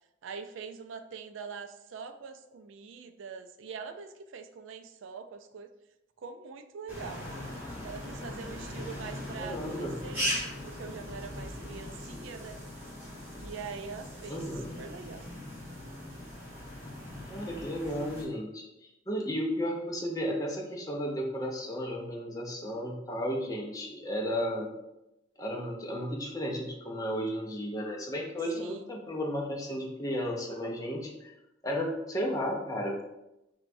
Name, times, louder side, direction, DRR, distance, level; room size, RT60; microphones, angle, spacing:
voice 1, 0.2-5.7 6.2-7.3 7.8-12.6 13.4-14.5 14.8-15.3 28.5-28.9, right 5 dB, 80° right, 7 dB, 0.4 m, -43 dB
sound 1, 6.9-18.3, equal, 10° right, 1.3 m, -39 dB
voice 2, 9.4-10.0 14.3-14.7 17.3-18.6 19.1-24.7 25.4-31.3 31.6-33.0, equal, 20° left, 0 dB, 0.5 m, -33 dB
6.1 x 2.3 x 2.6 m, 0.90 s
head